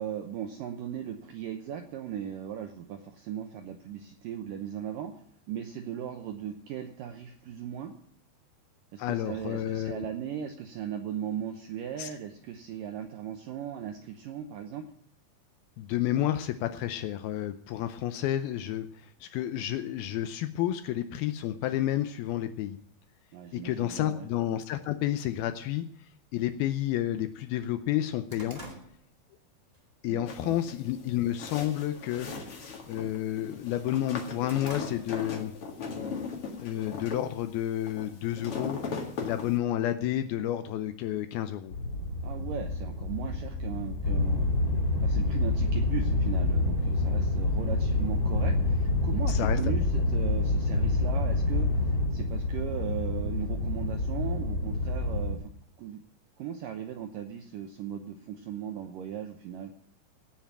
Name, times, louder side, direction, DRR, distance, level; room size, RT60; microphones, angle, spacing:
voice 1, 0.0-5.2 5.5-7.9 8.9-14.9 23.3-24.3 30.1-30.6 42.2-44.5 45.0-55.5 55.8-56.0 56.4-59.7, right 9 dB, 80° right, 5 dB, 2.0 m, -38 dB
voice 2, 9.0-10.1 12.0-12.1 15.8-22.8 23.5-28.6 30.0-32.6 32.9-35.5 36.6-41.7 49.3-49.7, left 12 dB, 85° left, 9 dB, 2.2 m, -31 dB
sound 1, 26.4-26.5 27.0-27.1 27.4-29.8 30.2-30.5 31.0-31.5 31.7-32.1 32.4-33.6 34.0-35.5 35.8-35.9 36.8-37.7, right 1 dB, 45° right, 0.4 m, -48 dB
sound 2, 30.3-39.5, left 5 dB, 45° left, 1.9 m, -39 dB
sound 3, 41.7-55.3, left 2 dB, 30° left, 3.0 m, -27 dB
17.0 x 5.9 x 8.6 m, 0.64 s
omnidirectional pair, 5.1 m